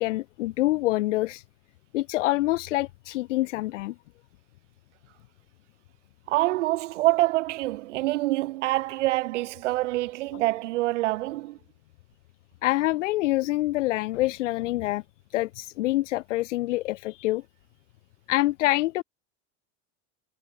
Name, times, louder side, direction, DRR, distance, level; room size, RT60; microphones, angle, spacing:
voice 1, 0.0-1.4 1.9-3.9 12.6-15.0 15.3-17.4 18.3-19.0, left 17 dB, 85° left, 3.0 m, -26 dB
voice 2, 6.3-11.6, right 18 dB, 80° right, 7.9 m, -26 dB
supercardioid pair, 155°, 35 cm